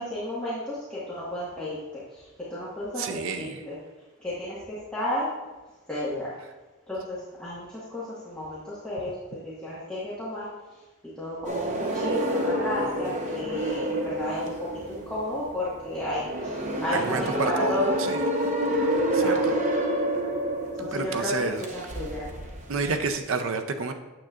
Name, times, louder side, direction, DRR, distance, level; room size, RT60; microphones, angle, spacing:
voice 1, 0.0-2.2 2.5-3.0 3.4-3.7 4.2-5.3 5.9-6.3 6.9-9.2 9.4-10.5 11.2-14.5 14.9-17.9 19.2-19.6 20.8-21.3 21.7-22.3, left 1 dB, 5° left, -11 dB, 1.4 m, -32 dB
voice 2, 3.0-3.6 16.9-18.2 19.1-19.5 20.8-21.7 22.7-23.9, right 4 dB, 70° right, 7 dB, 0.5 m, -30 dB
sound 1, 11.4-23.1, right 1 dB, 35° right, 0.7 m, -29 dB
8.9 x 7.3 x 2.4 m, 1.2 s
head